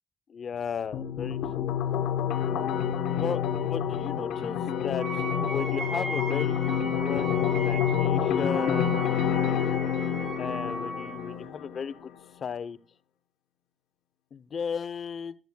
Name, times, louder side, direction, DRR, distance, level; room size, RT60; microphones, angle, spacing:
voice 1, 0.3-1.6 3.1-9.0 10.4-12.1 12.4-12.8 14.3-15.4, left 6 dB, 50° left, 14 dB, 0.7 m, -35 dB
sound 1, 0.9-11.9, left 8 dB, 90° left, 0.9 m, -28 dB
Wind instrument woodwind instrument, 5.0-11.3, right 2 dB, 45° right, 2.2 m, -38 dB
12.0 x 12.0 x 2.3 m, 0.36 s
cardioid pair, 90°, 0 cm